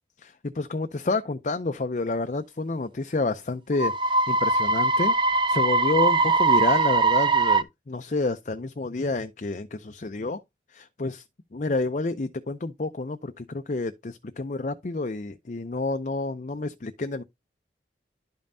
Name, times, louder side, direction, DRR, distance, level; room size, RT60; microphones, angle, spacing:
voice 1, 0.2-10.4 10.7-11.2 11.5-17.2, left 3 dB, 45° left, 0.5 m, -29 dB
sound 1, 3.7-7.6, right 3 dB, 25° right, 0.5 m, -21 dB
11.5 x 5.3 x 2.6 m
head